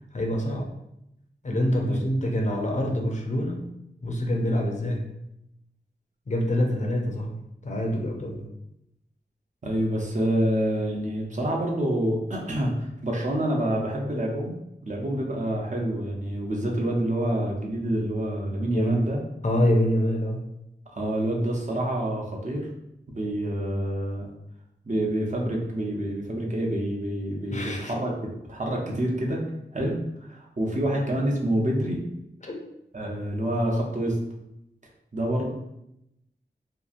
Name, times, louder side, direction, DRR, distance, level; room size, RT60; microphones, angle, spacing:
voice 1, 0.1-0.7 1.4-3.7 4.0-5.1 6.3-7.4 7.6-8.4 18.7-19.0 19.4-20.5 27.5-27.9 32.4-32.6, equal, 40° left, 1 dB, 0.5 m, -26 dB
voice 2, 9.6-14.6 14.8-19.2 20.9-22.7 23.1-24.3 24.9-29.4 29.7-32.0 32.9-34.2 35.1-35.5, right 1 dB, 45° right, -1 dB, 0.6 m, -27 dB
2.8 x 2.4 x 2.4 m, 0.83 s
wide cardioid pair, 75°, 18 cm